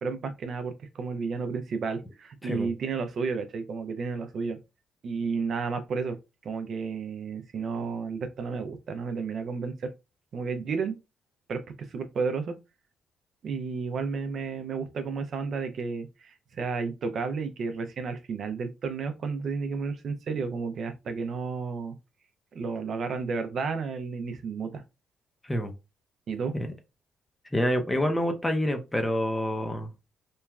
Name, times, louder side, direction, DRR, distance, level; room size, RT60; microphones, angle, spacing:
voice 1, 0.0-4.6 5.0-6.2 6.4-9.9 10.3-10.9 11.5-11.6 11.9-12.5 13.4-22.0 22.5-24.8 26.3-26.5, right 5 dB, 55° right, 0.4 m, -32 dB
voice 2, 27.5-29.9, equal, 15° left, 0.6 m, -27 dB
3.0 x 2.3 x 2.2 m
cardioid pair, 90°, 0 cm